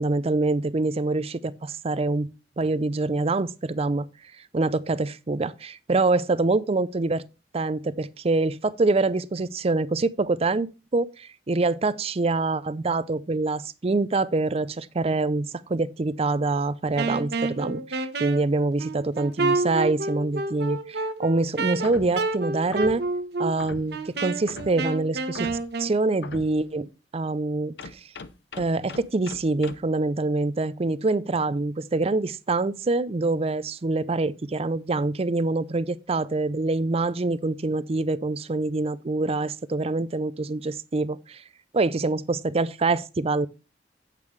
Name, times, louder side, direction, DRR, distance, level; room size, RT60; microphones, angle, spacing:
voice 1, 0.0-2.3 2.6-4.1 4.5-7.2 7.5-23.0 23.4-25.5 25.8-27.7 28.6-41.4 41.7-43.5, right 3 dB, 35° right, 0.5 m, -25 dB
Wind instrument woodwind instrument, 16.9-26.0, right 3 dB, 65° right, 1.0 m, -29 dB
sound 1, 21.8-22.2 22.7-23.1 23.6-24.0 24.5-24.9 25.3-25.7 26.2-26.6 27.8-29.8, left 4 dB, 70° left, 0.7 m, -40 dB
8.5 x 8.4 x 3.2 m
head